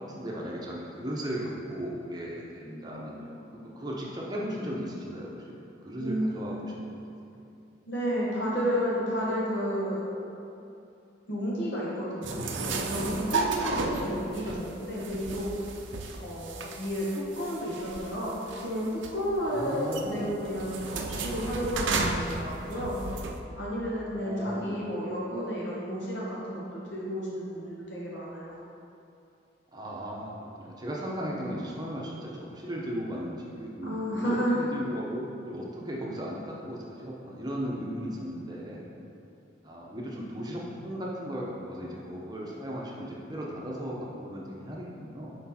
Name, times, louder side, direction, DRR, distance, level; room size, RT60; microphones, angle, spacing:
voice 1, 0.0-7.0 7.3-7.4 13.5-13.8 19.4-20.4 24.1-24.8 29.7-30.3 30.6-38.8 39.6-45.3, equal, 20° right, -4 dB, 0.8 m, -36 dB
voice 2, 6.0-6.7 7.9-10.2 11.3-15.5 16.2-23.0 23.5-28.6 33.8-34.6, equal, 70° left, -6 dB, 1.4 m, -32 dB
sound 1, 12.2-23.4, right 3 dB, 80° right, 0.5 m, -34 dB
6.2 x 4.7 x 4.3 m, 2.7 s
head